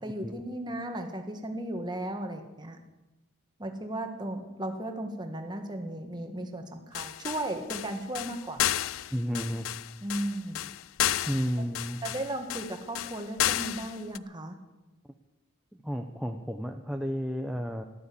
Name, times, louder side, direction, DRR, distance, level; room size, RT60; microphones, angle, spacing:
voice 1, 0.0-2.8 3.6-8.6 10.0-10.7 12.0-14.6, right 1 dB, 20° right, 5 dB, 1.5 m, -35 dB
sound 1, 6.9-14.2, left 12 dB, 70° left, 0.4 m, -32 dB
voice 2, 9.1-9.7 11.3-12.0 15.8-17.8, equal, 5° right, 3 dB, 0.6 m, -32 dB
14.0 x 12.0 x 8.5 m, 1.1 s
head